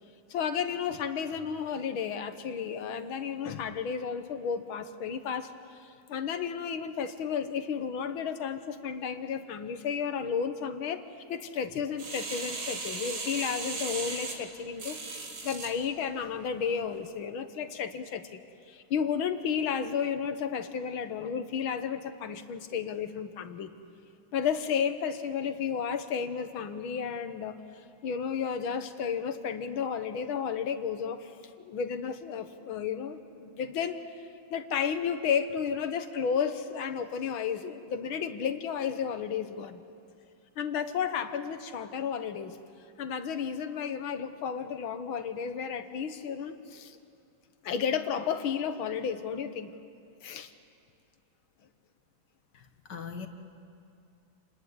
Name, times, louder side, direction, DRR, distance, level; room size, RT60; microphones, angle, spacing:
voice 1, 0.3-11.0 11.3-15.0 15.4-18.4 18.7-23.7 24.3-27.6 28.0-31.3 31.6-34.0 34.5-39.8 40.6-42.6 43.0-47.0 47.6-49.7 50.2-50.5, left 7 dB, 85° left, 9 dB, 2.0 m, -32 dB
sound 1, 12.0-15.7 16.3-16.4, right 3 dB, 85° right, 3.4 m, -37 dB
voice 2, 52.5-53.3, left 6 dB, 60° left, 6 dB, 2.1 m, -41 dB
28.5 x 19.5 x 9.7 m, 2.5 s
omnidirectional pair, 2.2 m